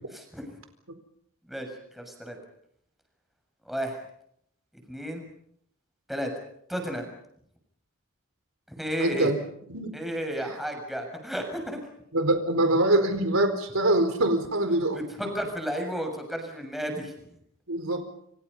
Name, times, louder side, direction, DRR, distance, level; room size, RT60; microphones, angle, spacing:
voice 1, 0.1-0.4 1.5-1.7 1.9-2.4 3.7-4.0 4.9-5.3 6.1-6.3 6.7-7.1 8.7-9.4 9.9-11.8 14.9-17.1, equal, ahead, 3 dB, 7.0 m, -32 dB
voice 2, 9.0-9.4 9.7-9.9 12.1-15.1 17.7-18.1, right 1 dB, 80° right, 7 dB, 4.5 m, -24 dB
29.0 x 26.5 x 5.6 m, 0.71 s
head